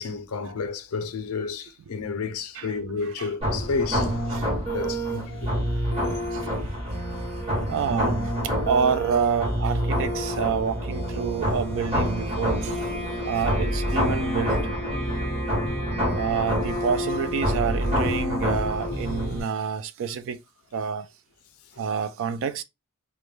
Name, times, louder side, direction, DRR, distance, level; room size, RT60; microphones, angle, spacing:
voice 1, 0.0-4.2 4.7-5.6 8.4-8.5 15.6-15.8 21.7-21.9, left 4 dB, 75° left, 0.5 m, -31 dB
sound 1, 3.4-19.4, equal, 30° right, 0.9 m, -27 dB
voice 2, 7.7-12.8 13.3-14.7 16.2-20.4 20.7-21.1 21.8-22.6, right 6 dB, 65° right, 0.3 m, -28 dB
2.2 x 2.1 x 3.0 m
head